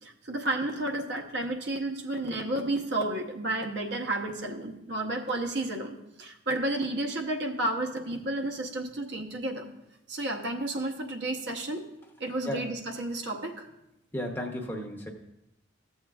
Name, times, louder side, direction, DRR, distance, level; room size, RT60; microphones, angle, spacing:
voice 1, 0.0-9.7 10.1-11.9 12.2-13.7, right 2 dB, 60° right, 2 dB, 0.8 m, -32 dB
voice 2, 14.1-15.1, equal, 10° left, 1 dB, 0.8 m, -33 dB
14.0 x 7.2 x 2.4 m, 0.88 s
head